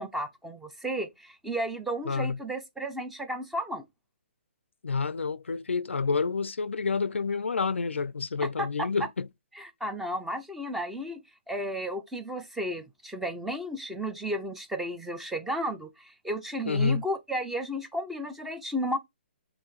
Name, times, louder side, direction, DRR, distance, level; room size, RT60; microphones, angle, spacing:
voice 1, 0.0-3.8 9.5-11.2 11.5-19.0, equal, 5° right, 0.7 m, -33 dB
voice 2, 2.1-2.4 4.8-9.3 16.6-17.0, left 5 dB, 85° left, 0.4 m, -28 dB
5.3 x 2.6 x 3.2 m
hypercardioid pair, 140°, 6 cm